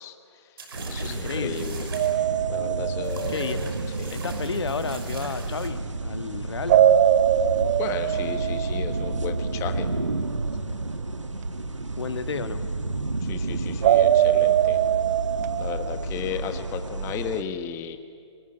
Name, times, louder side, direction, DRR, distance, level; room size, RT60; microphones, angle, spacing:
voice 1, 0.0-1.9 2.5-3.7 4.0-4.2 7.8-9.9 13.2-14.8 15.6-18.0, left 9 dB, 20° left, 8 dB, 1.3 m, -35 dB
sound 1, 0.6-2.2 3.0-5.7, right 4 dB, 50° right, 6.1 m, -42 dB
sound 2, 0.7-17.4, right 2 dB, 90° right, 1.6 m, -31 dB
voice 2, 0.8-1.6 3.3-3.6 4.1-6.8 11.9-12.6, left 5 dB, 60° left, 10 dB, 1.4 m, -32 dB
sound 3, 1.9-4.0 6.7-9.6 13.8-16.0, right 11 dB, 35° right, 0.7 m, -22 dB
23.5 x 21.5 x 10.0 m, 2.2 s
figure-of-eight pair, 135°, 15 cm